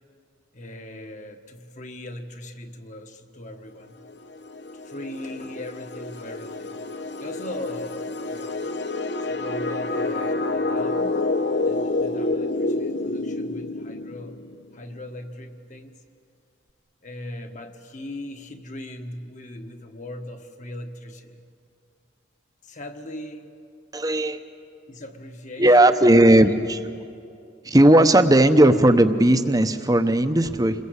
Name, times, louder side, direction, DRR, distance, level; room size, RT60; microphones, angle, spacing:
voice 1, 0.5-4.0 4.8-6.8 7.2-8.6 9.2-11.2 11.6-14.4 14.7-15.9 17.0-21.5 22.6-23.5 24.9-26.1 30.4-30.6, left 1 dB, 40° left, 6 dB, 1.6 m, -39 dB
sound 1, 4.1-14.6, left 2 dB, 60° left, 0.9 m, -28 dB
voice 2, 23.9-24.4 25.6-26.9 27.6-30.7, right 1 dB, 20° right, 9 dB, 0.9 m, -16 dB
28.0 x 21.0 x 8.2 m, 2.5 s
head